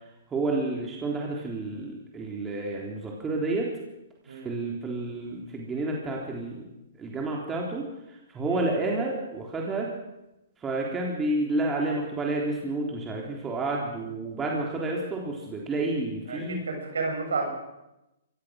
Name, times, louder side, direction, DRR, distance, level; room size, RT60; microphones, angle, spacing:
voice 1, 0.3-3.7 4.3-6.7 7.0-9.9 10.6-16.6, right 2 dB, 15° right, -1 dB, 3.8 m, -30 dB
voice 2, 16.3-17.5, right 3 dB, 85° right, 2 dB, 7.8 m, -31 dB
23.5 x 18.0 x 6.6 m, 0.93 s
hypercardioid pair, 140°, 0 cm